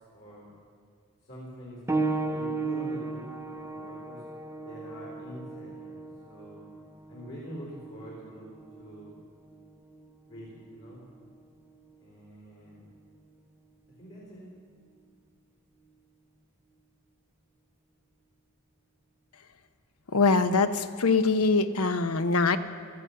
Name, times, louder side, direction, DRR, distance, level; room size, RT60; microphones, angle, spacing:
voice 1, 0.1-0.5 1.2-4.2 4.6-6.0 6.2-6.6 7.1-9.1 10.3-11.0 12.0-12.8 14.0-14.4, equal, 55° left, -5 dB, 3.8 m, -45 dB
sound 1, 1.9-12.1 13.1-13.2 13.9-14.0, right 3 dB, 10° right, 0.5 m, -36 dB
voice 2, 20.1-22.6, left 4 dB, 80° left, 11 dB, 0.7 m, -23 dB
16.5 x 13.0 x 5.7 m, 2.1 s
head